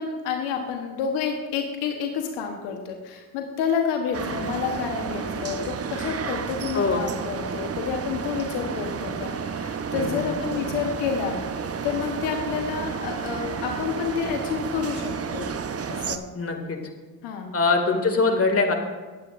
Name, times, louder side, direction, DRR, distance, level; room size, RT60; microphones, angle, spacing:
voice 1, 0.0-11.4 11.8-15.5 15.9-16.2 17.2-17.5, left 6 dB, 85° left, 3 dB, 1.2 m, -29 dB
sound 1, 4.1-16.2, right 6 dB, 35° right, 0.9 m, -31 dB
voice 2, 6.7-7.1 9.9-10.6 16.4-16.8 17.5-18.7, left 3 dB, 35° left, 3 dB, 2.2 m, -23 dB
19.0 x 8.6 x 2.5 m, 1.4 s
supercardioid pair, 60°, 40 cm